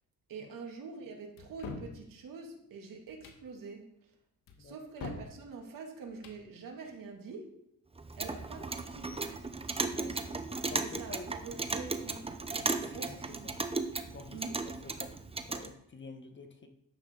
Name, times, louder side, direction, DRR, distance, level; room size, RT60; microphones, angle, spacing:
voice 1, 0.3-4.1 4.6-7.5 8.1-9.2 9.6-13.6 14.3-14.8, right 4 dB, 70° right, 1 dB, 2.6 m, -46 dB
sound 1, 1.4-1.9 3.1-3.4 4.5-5.3 6.1-6.4, left 4 dB, 85° left, 1.6 m, -43 dB
Clock, 8.0-15.7, right 3 dB, 15° right, 0.8 m, -36 dB
voice 2, 10.7-11.3 12.6-13.2 13.4-13.5 14.1-14.4 14.8-15.2 15.4-16.7, left 3 dB, 35° left, 6 dB, 1.2 m, -48 dB
10.5 x 8.2 x 3.9 m, 0.77 s
cardioid pair, 90°, 34 cm